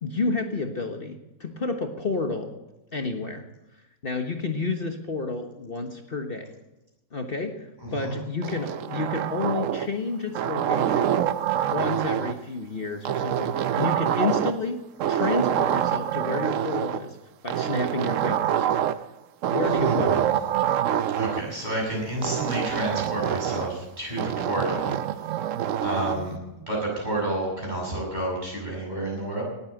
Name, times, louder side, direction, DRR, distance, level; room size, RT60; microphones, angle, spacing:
voice 1, 0.0-2.5 2.9-3.4 4.0-6.5 7.1-11.2 11.6-14.8 15.1-17.2 17.4-18.7 19.5-20.2 26.0-26.3, left 3 dB, 40° left, 5 dB, 1.4 m, -30 dB
sound 1, 8.4-10.0 10.3-12.4 13.1-14.7 15.0-17.0 17.5-19.1 19.4-21.4 22.2-23.8 24.2-26.2, right 10 dB, 65° right, 1.0 m, -26 dB
voice 2, 21.2-24.9 25.8-26.3 26.7-29.4, right 1 dB, 30° right, -3 dB, 7.1 m, -29 dB
18.5 x 8.9 x 7.9 m, 1.0 s
omnidirectional pair, 1.5 m